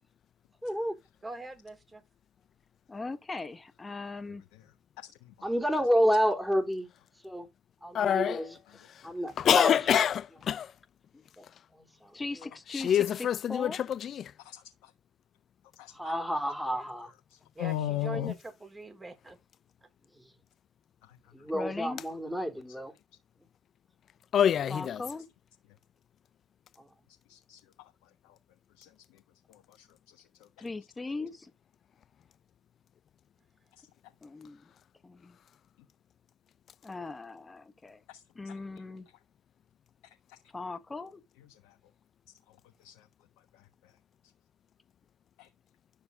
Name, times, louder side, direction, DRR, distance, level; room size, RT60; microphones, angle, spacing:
voice 1, 0.6-1.0 5.4-6.9 7.2-7.5 7.8-8.6 9.0-9.8 11.4-11.5 11.7-12.5 15.9-17.1 20.1-20.3 21.3-22.9 26.8-26.9, equal, 5° right, 3.3 m, -30 dB
voice 2, 1.2-2.0 16.7-16.8 17.5-19.4 19.8-19.9 36.8-37.1, right 2 dB, 25° right, 4.3 m, -43 dB
voice 3, 2.9-4.4 11.1-11.2 12.1-13.8 21.5-22.0 24.7-25.3 30.6-31.5 34.2-34.7 35.0-35.4 36.8-38.0 38.3-39.1 40.5-41.2, left 3 dB, 25° left, 1.4 m, -39 dB
voice 4, 7.9-8.4 9.4-10.7 12.7-14.3 24.3-25.0, left 9 dB, 60° left, 0.6 m, -26 dB
voice 5, 14.4-14.9 15.8-15.9 17.6-18.3 27.3-27.6 28.8-28.9 29.5-29.9 38.1-38.2 38.4-38.5 41.6-41.7 42.8-42.9 45.4-45.5, left 13 dB, 85° left, 1.3 m, -35 dB
11.5 x 6.7 x 2.6 m
supercardioid pair, 65°, 0 cm